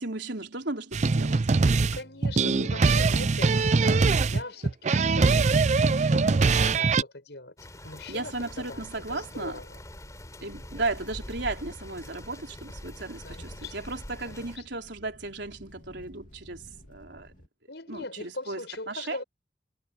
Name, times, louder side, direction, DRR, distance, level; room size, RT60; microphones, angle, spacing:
voice 1, 0.0-1.4 8.1-9.6 10.4-17.3 17.9-19.2, right 2 dB, 70° right, 3.9 m, -35 dB
sound 1, 0.9-7.0, right 4 dB, 40° right, 0.4 m, -22 dB
voice 2, 1.0-1.4 1.7-7.5 7.8-9.8 10.5-10.8 13.2-13.8 14.2-14.6 17.7-19.2, left 2 dB, 65° left, 7.0 m, -41 dB
sound 2, 7.6-14.6, left 1 dB, 20° left, 3.9 m, -44 dB
sound 3, 8.3-17.5, equal, 45° left, 3.1 m, -53 dB
head